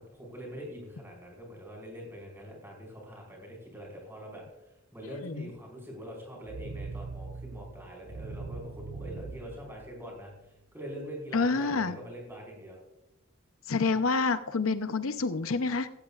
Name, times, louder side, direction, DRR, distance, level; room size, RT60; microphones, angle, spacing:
voice 1, 0.1-12.8, equal, 10° right, -1 dB, 4.9 m, -44 dB
voice 2, 5.1-5.5 11.3-12.0 13.7-15.9, left 4 dB, 80° left, 10 dB, 0.7 m, -28 dB
sound 1, 6.4-10.5, right 4 dB, 85° right, 0.6 m, -42 dB
16.5 x 15.0 x 2.5 m, 0.90 s
head